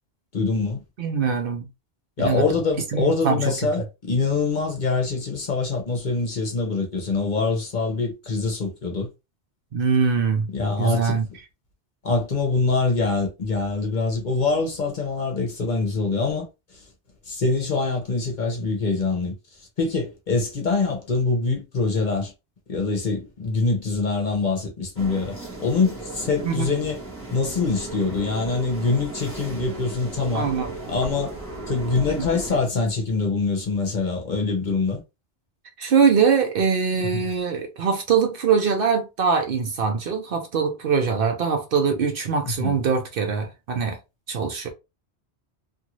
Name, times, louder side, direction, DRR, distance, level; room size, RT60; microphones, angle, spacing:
voice 1, 0.3-0.8 2.2-9.1 10.5-11.2 12.0-16.5 16.7-16.8 17.3-19.3 19.8-22.3 22.7-27.0 27.3-30.5 30.9-31.4 31.7-35.0 37.1-37.2 42.4-42.8, left 3 dB, 45° left, 0.9 m, -24 dB
voice 2, 1.0-1.7 2.2-2.5 2.9-3.4 9.7-10.5 10.8-11.3 26.4-26.7 30.3-30.7 32.2-32.3 35.8-44.0 44.3-44.7, right 6 dB, 60° right, 0.8 m, -22 dB
sound 1, 25.0-32.6, right 2 dB, 10° left, 1.0 m, -36 dB
2.6 x 2.5 x 2.9 m
omnidirectional pair, 1.1 m